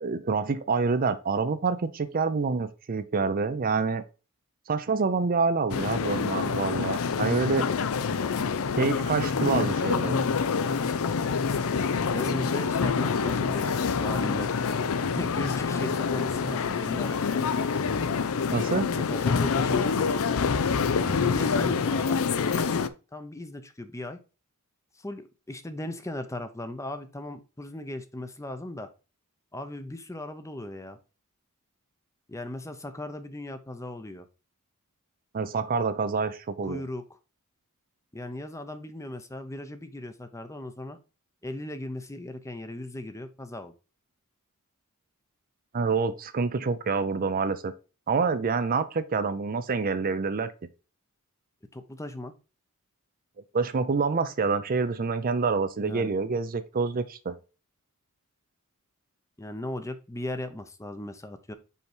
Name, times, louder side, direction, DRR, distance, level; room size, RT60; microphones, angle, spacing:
voice 1, 0.0-4.0 4.7-7.7 8.8-10.2 18.5-18.9 35.3-36.8 45.7-47.7 48.1-50.5 53.5-57.3, right 4 dB, 40° right, 0.5 m, -27 dB
sound 1, 5.7-22.9, left 5 dB, 65° left, 0.5 m, -26 dB
voice 2, 12.1-14.5 15.1-17.5 18.9-20.2 21.0-22.8 23.1-24.2 25.0-28.9 29.5-31.0 32.3-34.3 36.7-37.1 38.1-41.0 41.4-43.7 51.7-52.3 55.8-56.1 59.4-61.5, left 1 dB, 15° left, 0.7 m, -37 dB
5.6 x 4.6 x 4.4 m
head